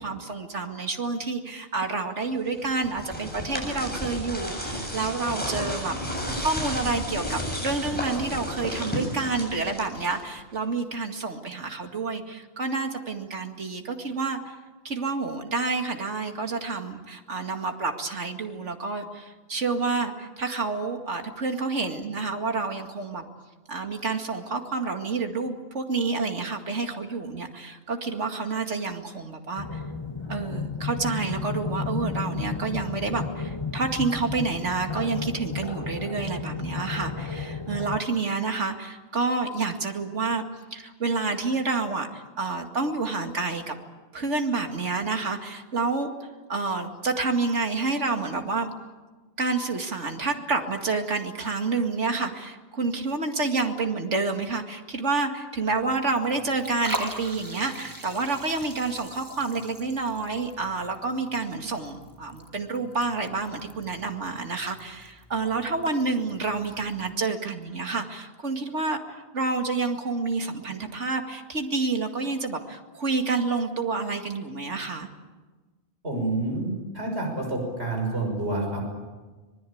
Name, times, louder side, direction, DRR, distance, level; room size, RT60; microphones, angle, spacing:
voice 1, 0.0-5.9 6.4-14.6 14.8-23.2 23.7-29.8 30.3-43.8 44.1-48.7 49.4-75.1, right 3 dB, 85° right, 4 dB, 2.5 m, -29 dB
sound 1, 2.6-10.4, equal, 10° left, 7.4 m, -32 dB
sound 2, 29.6-38.0, left 5 dB, 25° left, 1.1 m, -33 dB
Liquid, 55.7-67.1, right 1 dB, 15° right, 1.7 m, -41 dB
voice 2, 76.0-78.9, right 2 dB, 65° right, 1 dB, 6.6 m, -28 dB
25.5 x 20.5 x 8.7 m, 1.3 s
omnidirectional pair, 1.2 m